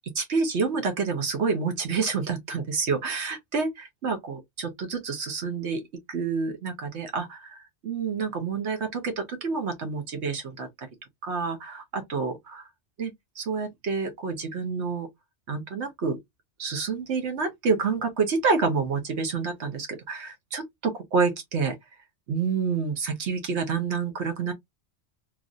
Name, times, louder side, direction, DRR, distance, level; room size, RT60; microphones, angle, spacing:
voice 1, 0.1-5.8 6.1-10.9 11.2-12.3 13.0-15.1 15.5-16.2 16.6-21.8 22.3-24.5, right 5 dB, 75° right, 1.2 m, -28 dB
3.1 x 2.5 x 2.4 m
omnidirectional pair, 1.2 m